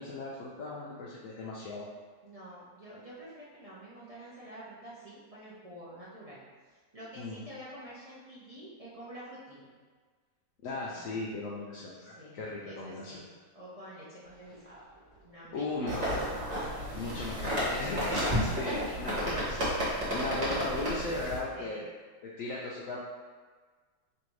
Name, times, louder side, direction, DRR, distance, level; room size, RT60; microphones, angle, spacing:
voice 1, 0.0-1.9 7.2-7.4 10.6-13.2 15.5-16.2 16.9-19.6 20.1-21.8 22.2-23.0, left 2 dB, 70° left, -5 dB, 0.8 m, -37 dB
voice 2, 2.2-6.4 6.7-9.7 10.9-11.1 12.0-13.3 13.5-14.9 15.2-16.1 16.6-19.2 21.5-21.9, right 1 dB, 65° right, -9 dB, 0.3 m, -48 dB
sound 1, 14.3-20.2, equal, 20° right, 1.3 m, -38 dB
sound 2, 15.9-21.4, equal, 45° right, 1.5 m, -33 dB
3.2 x 2.7 x 4.5 m, 1.5 s
omnidirectional pair, 1.8 m